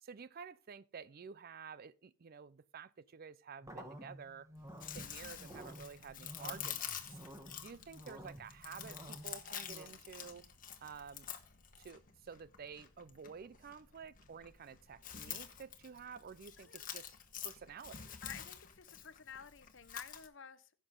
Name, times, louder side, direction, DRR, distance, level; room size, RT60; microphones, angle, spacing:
voice 1, 0.0-4.5 4.9-7.2 7.6-10.4 10.8-11.3 11.8-17.1 17.4-18.2, right 6 dB, 50° right, 0.5 m, -51 dB
sound 1, 3.6-9.9, equal, 15° right, 1.2 m, -52 dB
Chewing mastication, 4.6-20.3, left 9 dB, 45° left, 1.2 m, -48 dB
voice 2, 7.4-7.9 16.6-16.9 18.2-20.7, left 7 dB, 65° left, 0.9 m, -52 dB
16.0 x 6.3 x 3.8 m
head